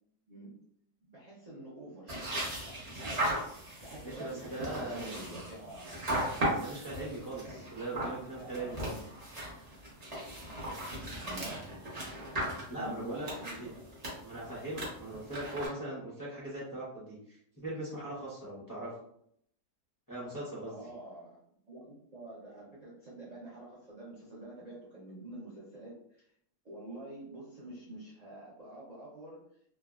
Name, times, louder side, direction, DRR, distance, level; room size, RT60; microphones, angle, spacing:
voice 1, 1.0-3.4 3.8-6.0 8.3-8.6 11.2-11.9 12.8-13.8 20.7-21.4 21.7-26.3 26.6-29.5, right 1 dB, 85° right, -7 dB, 0.3 m, -47 dB
sound 1, 2.1-15.7, right 1 dB, 35° right, 0.7 m, -38 dB
voice 2, 4.0-5.2 6.5-8.9 12.7-13.3 13.6-13.7 14.2-18.9 20.1-20.8, right 1 dB, 25° left, -8 dB, 0.4 m, -40 dB
3.3 x 2.0 x 2.3 m, 0.70 s
omnidirectional pair, 1.7 m